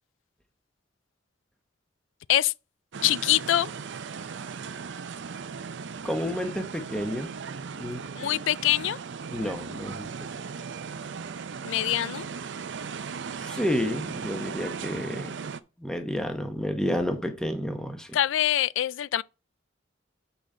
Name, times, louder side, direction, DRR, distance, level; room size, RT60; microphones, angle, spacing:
sound 1, 2.9-15.6, right 5 dB, 65° right, 0.5 m, -37 dB
voice 1, 3.0-3.7 8.2-9.0 11.6-12.3 18.1-19.2, left 12 dB, 75° left, 0.3 m, -24 dB
voice 2, 6.0-7.3 7.8-8.0 9.3-10.1 13.4-15.3 15.8-18.2, equal, 5° left, 0.9 m, -30 dB
6.2 x 5.1 x 5.4 m
head